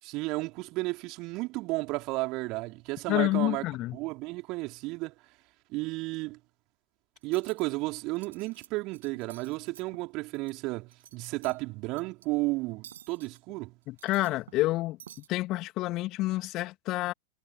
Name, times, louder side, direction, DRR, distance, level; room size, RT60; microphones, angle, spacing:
voice 1, 0.0-3.6 3.9-5.2 5.7-6.4 7.2-13.7, right 23 dB, 40° right, 4.8 m, -33 dB
voice 2, 3.1-4.0 13.9-15.0 15.3-17.1, left 18 dB, 40° left, 2.5 m, -28 dB
Cutlery silverware, 7.2-7.6 8.1-8.7 8.9-10.5 10.9-11.6 12.0-12.2 12.8-13.4 13.8-14.7 15.0-15.3, right 10 dB, 60° right, 7.2 m, -51 dB
figure-of-eight pair, 90°, 0 cm